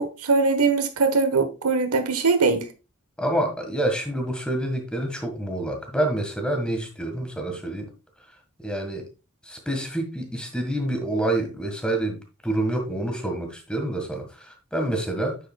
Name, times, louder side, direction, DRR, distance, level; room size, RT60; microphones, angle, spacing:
voice 1, 0.0-2.7, right 4 dB, 90° right, 1.3 m, -21 dB
voice 2, 3.2-7.9 8.6-9.0 9.5-15.4, right 1 dB, 5° left, 1.7 m, -27 dB
9.2 x 7.4 x 2.3 m
head